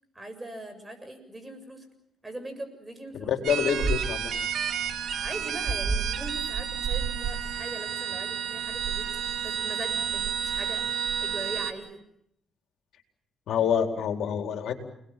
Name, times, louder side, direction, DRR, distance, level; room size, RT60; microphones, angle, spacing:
voice 1, 0.1-1.9 2.2-3.3 5.2-10.8 11.2-12.0, right 1 dB, 15° right, 7 dB, 7.4 m, -41 dB
voice 2, 3.1-4.3 13.5-14.7, left 8 dB, 75° left, 4 dB, 4.2 m, -27 dB
sound 1, 3.4-11.7, right 7 dB, 70° right, 2.0 m, -30 dB
29.5 x 21.0 x 7.6 m, 0.75 s
cardioid pair, 90°, 0 cm